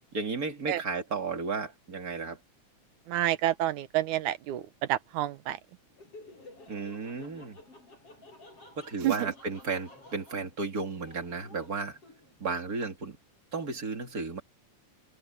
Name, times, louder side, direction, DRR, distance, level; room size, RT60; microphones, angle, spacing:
voice 1, 0.1-2.4 6.7-7.6 8.8-12.0 12.4-13.2 13.5-14.4, right 4 dB, 30° right, 2.9 m, -34 dB
voice 2, 3.1-4.6 4.9-5.6 9.0-9.1, right 13 dB, 75° right, 2.2 m, -28 dB
Laughter, 5.9-12.5, left 2 dB, 45° left, 7.9 m, -53 dB
omnidirectional pair, 3.8 m